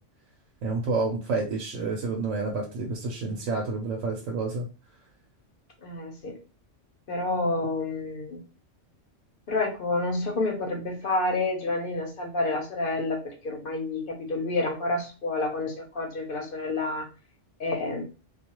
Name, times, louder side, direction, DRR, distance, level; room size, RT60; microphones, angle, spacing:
voice 1, 0.6-4.7, right 3 dB, 90° right, -1 dB, 1.0 m, -29 dB
voice 2, 5.8-6.4 7.1-8.4 9.5-17.1 17.6-18.0, left 2 dB, 50° left, 2 dB, 0.8 m, -29 dB
2.3 x 2.3 x 2.9 m, 0.33 s
omnidirectional pair, 1.3 m